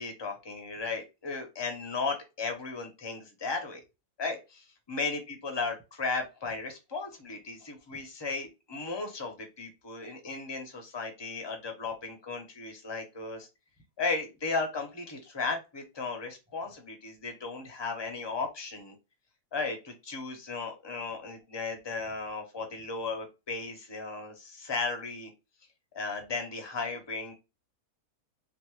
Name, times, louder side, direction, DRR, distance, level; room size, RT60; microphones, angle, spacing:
voice 1, 0.0-3.8 4.2-13.5 14.0-18.9 19.5-25.3 25.9-27.3, left 4 dB, 25° left, 3 dB, 0.5 m, -35 dB
3.1 x 2.5 x 3.0 m, 0.26 s
omnidirectional pair, 1.6 m